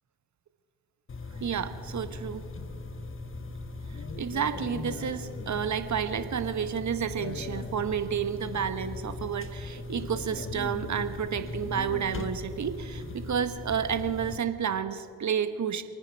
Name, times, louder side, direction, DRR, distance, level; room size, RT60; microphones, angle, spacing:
sound 1, 1.1-14.4, left 3 dB, 30° left, 1.5 m, -38 dB
voice 1, 1.4-2.4 4.2-15.8, right 7 dB, 40° right, 10 dB, 1.5 m, -30 dB
28.5 x 9.8 x 4.8 m, 2.4 s
hypercardioid pair, 50°, 42 cm